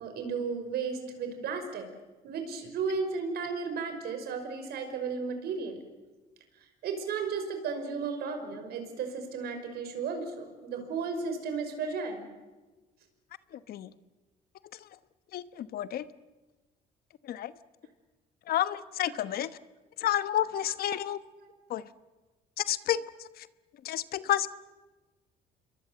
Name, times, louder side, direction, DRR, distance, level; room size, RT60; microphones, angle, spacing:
voice 1, 0.0-1.9 2.2-5.8 6.8-12.2 19.1-19.2 20.9-21.0 21.4-21.5, right 5 dB, 70° right, 7 dB, 5.6 m, -34 dB
voice 2, 13.5-13.9 15.3-16.1 17.2-17.5 18.5-19.5 20.0-21.2 21.7-21.8 22.6-23.5 23.8-24.5, left 11 dB, 65° left, 14 dB, 1.1 m, -30 dB
27.5 x 23.0 x 7.8 m, 1.2 s
cardioid pair, 110°, 17 cm